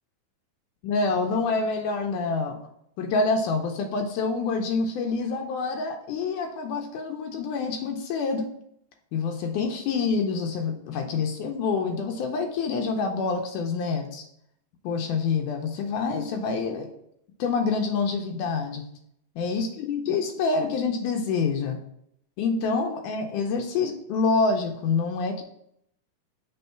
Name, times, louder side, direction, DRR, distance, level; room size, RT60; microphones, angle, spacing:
voice 1, 0.8-2.6 3.0-8.5 9.1-14.3 14.8-16.9 17.4-18.8 19.4-21.8 22.4-25.4, left 4 dB, 80° left, 3 dB, 2.0 m, -27 dB
5.4 x 3.6 x 5.6 m, 0.73 s
omnidirectional pair, 3.8 m